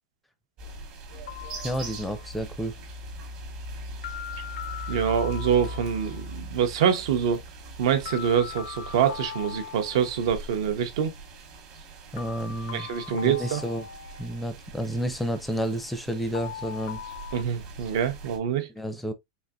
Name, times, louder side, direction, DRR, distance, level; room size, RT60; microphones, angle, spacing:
sound 1, 0.6-18.4, right 1 dB, 40° right, 1.0 m, -41 dB
sound 2, 1.3-2.4 4.0-6.3 8.0-10.4 12.2-14.5 16.3-17.4, left 9 dB, 85° left, 0.5 m, -40 dB
voice 1, 1.6-2.7 12.1-12.9 13.1-13.9 14.2-17.0 18.8-19.1, equal, 5° left, 0.5 m, -30 dB
voice 2, 4.9-7.4 7.8-11.1 12.7-13.6 17.3-18.7, right 8 dB, 65° right, 0.7 m, -25 dB
4.0 x 2.8 x 2.2 m
supercardioid pair, 160°, 3 cm